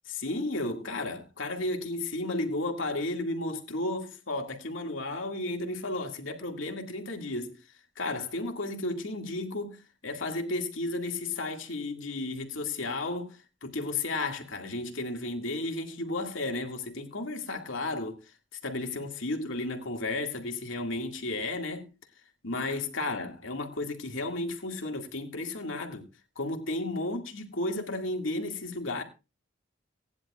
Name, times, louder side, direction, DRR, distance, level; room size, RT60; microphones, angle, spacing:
voice 1, 0.2-7.5 8.0-18.2 18.6-21.9 22.4-26.1 26.4-29.0, left 2 dB, 85° left, 2.2 m, -33 dB
18.5 x 10.5 x 2.4 m
head